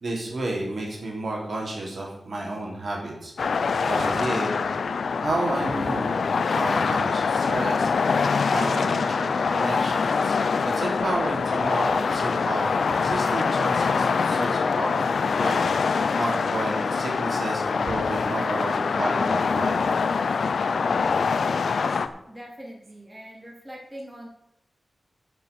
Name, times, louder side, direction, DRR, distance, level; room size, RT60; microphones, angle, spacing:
voice 1, 0.0-3.3 3.9-4.5 5.2-6.2 6.5-7.9 8.5-10.4 10.6-19.8, right 2 dB, 60° right, -1 dB, 3.2 m, -31 dB
sound 1, 3.4-22.1, left 5 dB, 80° left, 0.6 m, -24 dB
voice 2, 22.3-24.3, equal, 10° right, -2 dB, 3.2 m, -42 dB
14.0 x 6.1 x 6.1 m, 0.80 s
wide cardioid pair, 105°, 0 cm